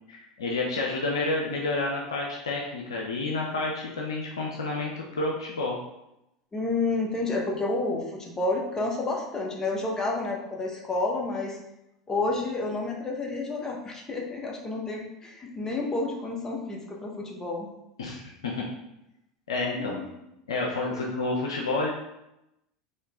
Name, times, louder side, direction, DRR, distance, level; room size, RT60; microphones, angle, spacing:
voice 1, 0.1-5.8 18.0-18.6 19.5-20.0 20.5-21.9, left 3 dB, 85° left, -1 dB, 0.6 m, -29 dB
voice 2, 6.5-11.6 12.1-17.7 19.8-20.1, left 2 dB, 20° left, 0 dB, 1.1 m, -30 dB
4.4 x 3.1 x 3.6 m, 0.88 s
hypercardioid pair, 85°, 3 cm